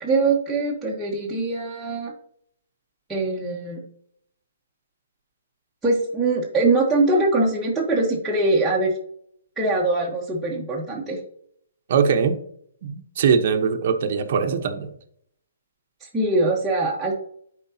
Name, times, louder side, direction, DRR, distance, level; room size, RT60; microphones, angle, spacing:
voice 1, 0.0-2.1 3.1-3.8 5.8-8.9 9.6-11.2 16.0-17.1, right 2 dB, 5° right, -6 dB, 1.1 m, -22 dB
voice 2, 11.9-12.4 12.8-14.9, right 6 dB, 50° right, 6 dB, 0.9 m, -21 dB
11.0 x 4.5 x 2.8 m, 0.66 s
hypercardioid pair, 155°, 0 cm